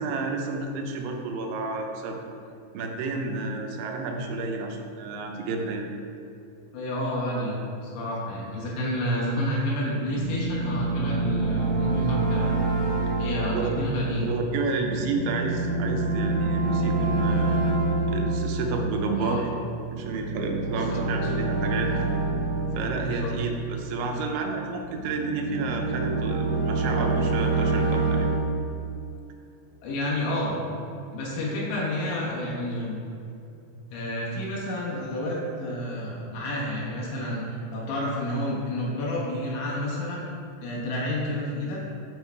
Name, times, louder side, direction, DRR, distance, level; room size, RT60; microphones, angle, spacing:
voice 1, 0.0-2.2 2.7-5.9 13.5-13.7 14.2-17.6 18.1-19.5 19.9-21.9 22.7-28.3, right 3 dB, 90° right, 2 dB, 3.2 m, -30 dB
voice 2, 6.7-12.5 13.2-14.3 19.1-19.5 20.7-21.0 23.0-23.3 29.8-30.6 31.1-33.0 33.9-40.2 40.6-41.8, left 1 dB, 80° left, -5 dB, 3.4 m, -30 dB
sound 1, 10.0-24.3 24.8-28.4, right 3 dB, 65° right, 1.9 m, -27 dB
8.3 x 5.6 x 4.6 m, 2.6 s
omnidirectional pair, 5.1 m